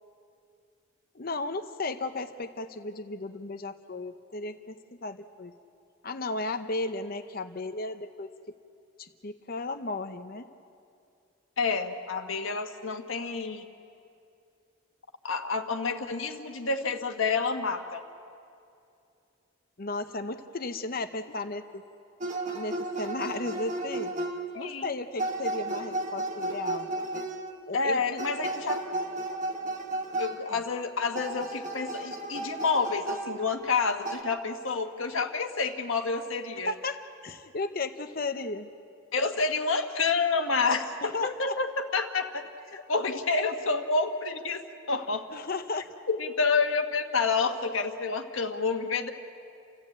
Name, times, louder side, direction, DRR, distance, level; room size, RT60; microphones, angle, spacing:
voice 1, 1.1-5.5 6.0-8.6 9.0-10.5 19.8-21.8 22.5-24.1 24.5-27.3 27.7-28.2 36.6-38.7 41.0-41.6 45.3-45.9, left 3 dB, 45° left, 8 dB, 0.7 m, -35 dB
voice 2, 11.6-13.7 15.2-18.0 24.5-24.9 27.7-28.8 30.2-36.7 39.1-42.4 42.7-45.3 46.1-49.1, left 4 dB, 70° left, 5 dB, 1.4 m, -29 dB
sound 1, 22.2-24.6 25.2-27.6 28.2-30.6 31.1-33.7 34.1-34.2, right 2 dB, 35° right, 1.4 m, -34 dB
29.5 x 14.5 x 8.6 m, 2.5 s
head